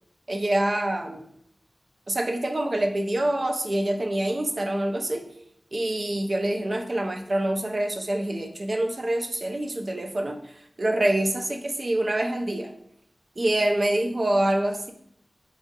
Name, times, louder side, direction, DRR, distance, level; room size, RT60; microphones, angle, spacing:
voice 1, 0.3-1.2 2.1-5.3 5.7-10.4 10.8-12.7 13.4-14.9, right 1 dB, 55° right, 4 dB, 0.5 m, -26 dB
4.1 x 2.5 x 2.6 m, 0.70 s
cardioid pair, 40°, 0 cm